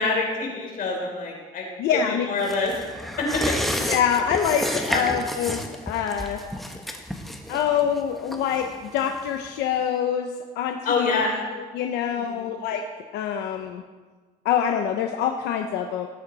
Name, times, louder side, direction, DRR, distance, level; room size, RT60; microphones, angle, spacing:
voice 1, 0.0-2.7 3.2-3.5 4.9-5.0 10.8-11.3 12.1-12.5, left 4 dB, 55° left, -1 dB, 4.2 m, -26 dB
voice 2, 1.8-2.2 3.9-6.4 7.5-11.2 11.5-12.8 13.1-13.8 14.4-16.1, left 8 dB, 90° left, 4 dB, 0.8 m, -25 dB
sound 1, 2.4-9.5 9.8-9.9, equal, ahead, 1.3 m, -31 dB
18.0 x 8.4 x 4.1 m, 1.4 s
cardioid pair, 110°, 17 cm